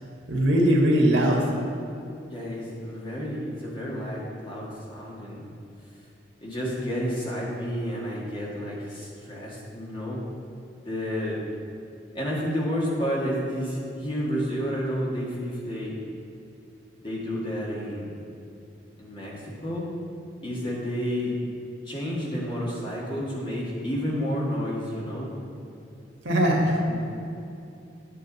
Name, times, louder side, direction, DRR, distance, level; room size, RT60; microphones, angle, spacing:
voice 1, 0.3-1.4 26.2-26.8, right 1 dB, 90° right, -1 dB, 1.7 m, -20 dB
voice 2, 2.3-5.5 6.4-10.2 10.9-11.4 12.1-15.9 17.0-18.1 19.0-19.9 20.4-21.4 21.9-25.3 26.8-27.1, equal, 25° left, -5 dB, 1.9 m, -30 dB
8.9 x 8.9 x 4.1 m, 2.6 s
head